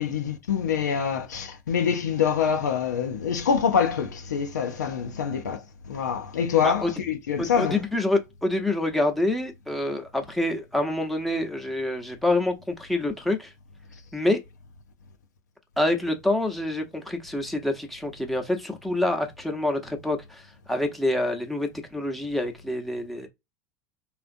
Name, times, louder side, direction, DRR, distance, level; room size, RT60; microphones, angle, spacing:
voice 1, 0.0-7.8, left 7 dB, 80° left, 0.6 m, -25 dB
voice 2, 7.4-13.5 14.1-14.4 15.8-23.3, left 1 dB, ahead, 0.8 m, -27 dB
3.6 x 2.5 x 2.5 m
hypercardioid pair, 80°, 9 cm